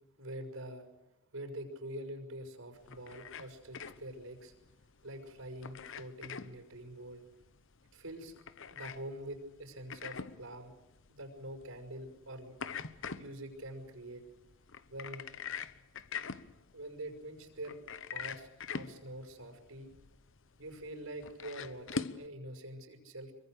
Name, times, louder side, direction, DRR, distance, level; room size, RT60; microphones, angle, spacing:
voice 1, 0.2-0.9 1.3-4.5 5.0-7.2 7.9-8.3 8.7-10.7 11.1-12.6 13.1-14.2 14.9-15.3 16.7-17.8 18.1-19.9 20.6-23.3, right 1 dB, 75° right, 3 dB, 5.7 m, -45 dB
sound 1, 2.7-22.3, left 5 dB, 65° left, 1.0 m, -45 dB
26.0 x 24.0 x 6.7 m, 0.98 s
head